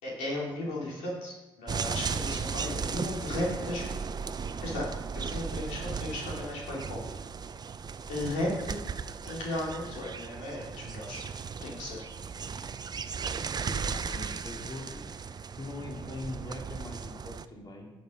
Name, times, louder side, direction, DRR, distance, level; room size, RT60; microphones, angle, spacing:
voice 1, 0.0-4.0 4.6-7.0 8.1-8.8 9.2-11.3 11.6-12.0, left 1 dB, 85° left, -4 dB, 3.0 m, -35 dB
sound 1, 1.7-17.5, right 6 dB, 35° right, 0.5 m, -36 dB
voice 2, 13.6-15.2 15.6-17.9, left 2 dB, 35° left, 0 dB, 2.4 m, -41 dB
10.0 x 6.4 x 5.2 m, 1.0 s
supercardioid pair, 65°, 12 cm